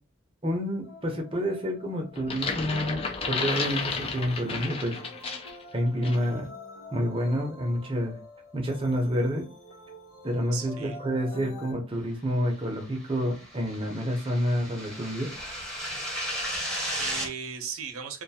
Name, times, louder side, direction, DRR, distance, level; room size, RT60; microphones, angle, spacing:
voice 1, 0.4-5.0 5.7-6.5 6.9-8.2 8.5-9.5 10.2-15.3, equal, 25° right, 0.6 m, -28 dB
sound 1, 0.8-11.7, left 2 dB, 90° left, 1.1 m, -47 dB
sound 2, 2.2-5.6 6.0-6.2, left 4 dB, 25° left, 0.3 m, -32 dB
voice 2, 10.5-11.0 16.5-18.2, right 6 dB, 85° right, 0.6 m, -37 dB
sound 3, 12.8-17.3, equal, ahead, 0.8 m, -34 dB
2.5 x 2.3 x 2.7 m
head